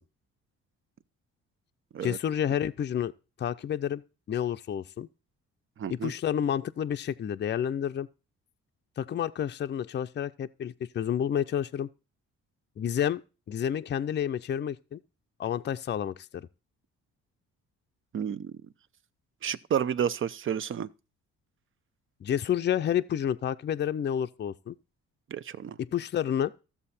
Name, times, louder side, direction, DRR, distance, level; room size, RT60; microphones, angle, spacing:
voice 1, 2.0-3.1 3.4-4.0 4.3-5.1 5.9-8.1 9.0-11.9 12.8-13.2 13.5-15.0 15.4-16.5 22.2-24.8 25.8-26.5, left 9 dB, 35° left, 0.5 m, -29 dB
voice 2, 5.8-6.1 18.1-18.6 19.4-20.9 25.3-25.8, right 8 dB, 45° right, 0.6 m, -31 dB
13.0 x 7.2 x 4.2 m
cardioid pair, 90°, 30 cm